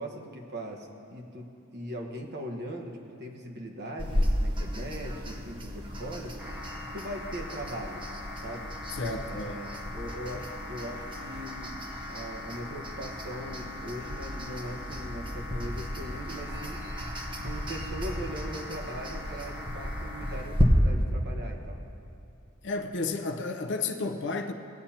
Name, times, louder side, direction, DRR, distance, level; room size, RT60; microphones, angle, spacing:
voice 1, 0.0-6.4 6.9-8.0 8.4-8.8 9.3-11.8 12.1-16.9 17.4-21.8, right 1 dB, 50° right, 1 dB, 1.2 m, -40 dB
sound 1, 4.0-20.6, equal, 20° right, 1.0 m, -34 dB
sound 2, 6.4-20.4, left 2 dB, 5° right, 1.5 m, -43 dB
voice 2, 9.0-9.5 22.6-24.5, left 3 dB, 55° left, 5 dB, 0.6 m, -32 dB
18.5 x 8.5 x 2.9 m, 2.6 s
head